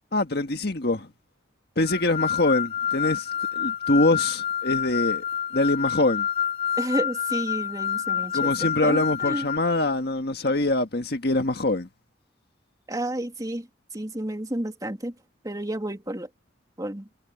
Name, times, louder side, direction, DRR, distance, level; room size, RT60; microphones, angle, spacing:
voice 1, 0.1-1.1 1.8-3.3 3.5-5.2 5.5-6.3 8.3-11.9, left 2 dB, 55° left, 1.8 m, -24 dB
sound 1, 1.8-9.6, left 9 dB, 30° left, 0.6 m, -28 dB
voice 2, 6.8-8.5 8.8-9.5 12.9-13.7 13.9-15.1 15.4-16.3 16.8-17.1, right 1 dB, 20° right, 2.9 m, -31 dB
head